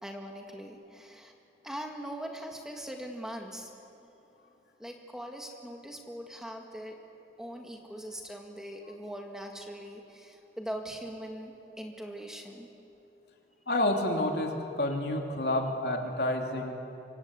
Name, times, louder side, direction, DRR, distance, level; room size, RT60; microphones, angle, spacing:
voice 1, 0.0-1.3 1.6-3.7 4.0-4.1 4.8-7.0 7.4-12.7, equal, 5° right, 2 dB, 2.0 m, -41 dB
voice 2, 13.7-16.7, left 1 dB, 65° left, 2 dB, 3.1 m, -29 dB
25.5 x 25.5 x 8.3 m, 2.8 s
head